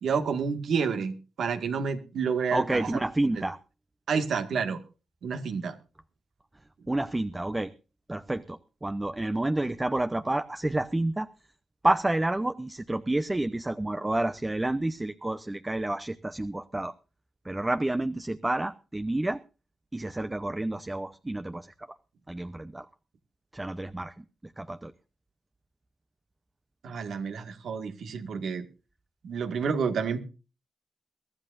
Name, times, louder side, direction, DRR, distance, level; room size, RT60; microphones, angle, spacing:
voice 1, 0.0-3.0 3.3-3.4 4.1-4.8 5.2-5.8 26.8-28.7 29.2-30.2, right 6 dB, 75° right, 7 dB, 1.9 m, -29 dB
voice 2, 2.5-3.6 6.9-7.7 8.1-11.3 11.8-16.9 17.4-19.4 19.9-21.7 22.3-22.9 23.5-24.2 24.6-24.9, right 1 dB, 20° right, 11 dB, 0.8 m, -29 dB
23.0 x 12.5 x 2.6 m, 0.33 s
supercardioid pair, 55°, 0 cm